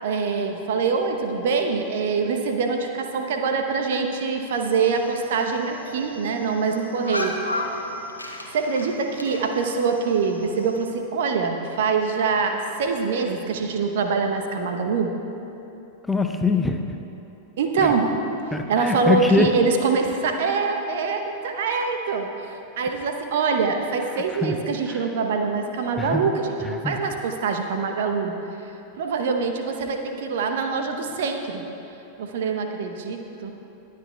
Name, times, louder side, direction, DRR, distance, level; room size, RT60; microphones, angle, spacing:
voice 1, 0.0-7.4 8.5-15.1 17.6-18.1 18.7-22.3 22.8-28.3 29.0-31.6 32.2-33.5, right 5 dB, 55° right, 4 dB, 0.9 m, -24 dB
geese honking honk, 4.5-10.9, left 1 dB, 85° left, 0.9 m, -35 dB
voice 2, 16.1-16.8 17.8-17.9 18.5-19.5 24.1-24.6 24.9-25.1 26.0-26.3 26.8-27.0, left 3 dB, 10° left, 4 dB, 0.6 m, -23 dB
21.0 x 9.3 x 2.3 m, 2.9 s
figure-of-eight pair, 90°, 0 cm